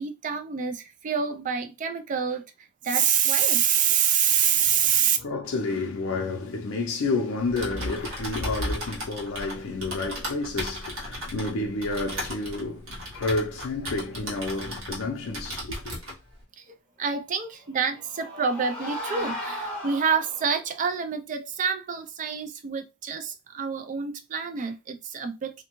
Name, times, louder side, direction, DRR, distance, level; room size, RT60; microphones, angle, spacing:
voice 1, 0.0-5.2 16.6-25.6, right 7 dB, 35° right, 0.3 m, -26 dB
voice 2, 4.5-16.0, left 3 dB, 75° left, 0.5 m, -30 dB
Typing, 7.5-15.1 15.3-16.2, equal, 65° right, 1.1 m, -35 dB
sound 1, 17.7-20.6, left 1 dB, 5° left, 0.8 m, -36 dB
2.6 x 2.2 x 2.9 m
head